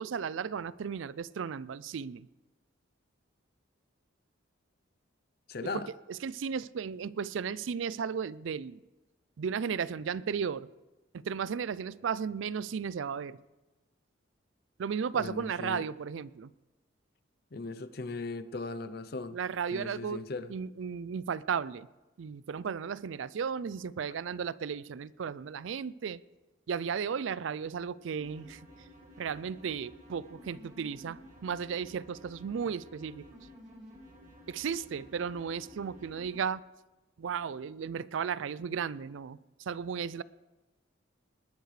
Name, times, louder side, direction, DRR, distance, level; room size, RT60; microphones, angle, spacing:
voice 1, 0.0-2.3 5.6-5.8 6.1-8.8 9.4-10.7 11.1-13.4 14.8-16.5 19.3-20.2 20.5-21.9 22.2-26.2 26.7-28.6 29.2-33.2 34.5-36.6 37.2-40.2, right 6 dB, 75° right, 0.4 m, -35 dB
voice 2, 5.5-5.9 15.1-15.9 17.5-19.4 19.7-20.5, left 3 dB, 50° left, 0.6 m, -38 dB
sound 1, 28.2-36.4, equal, 35° right, 2.4 m, -53 dB
20.5 x 11.5 x 3.3 m
head